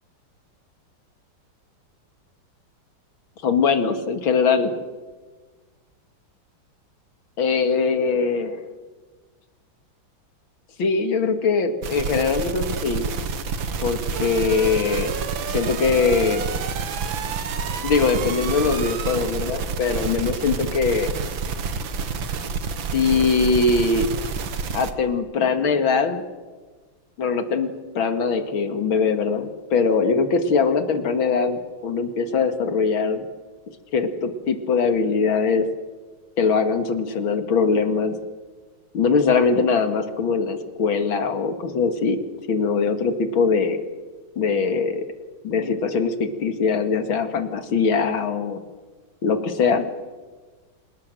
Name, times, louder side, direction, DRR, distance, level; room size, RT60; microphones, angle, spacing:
voice 1, 3.4-4.7 7.4-8.6 10.8-13.1 13.8-15.1 15.5-16.5 17.8-21.1 22.9-24.1 24.7-26.2 27.2-33.3 33.9-35.7 36.4-38.1 38.9-42.2 42.5-43.8 44.4-45.1 45.4-48.6 49.2-49.8, left 5 dB, 75° left, 8 dB, 2.7 m, -22 dB
sound 1, 11.8-24.9, right 5 dB, 70° right, 2.2 m, -28 dB
27.0 x 18.5 x 7.7 m, 1.3 s
omnidirectional pair, 2.2 m